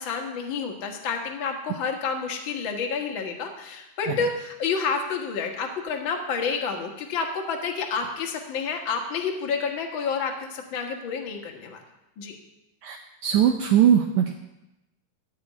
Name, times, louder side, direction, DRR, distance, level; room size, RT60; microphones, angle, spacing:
voice 1, 0.0-11.8 12.2-12.4, left 5 dB, 50° left, 3 dB, 1.7 m, -29 dB
voice 2, 13.2-14.3, right 9 dB, 75° right, 4 dB, 1.9 m, -20 dB
14.5 x 5.2 x 9.3 m, 0.95 s
omnidirectional pair, 3.8 m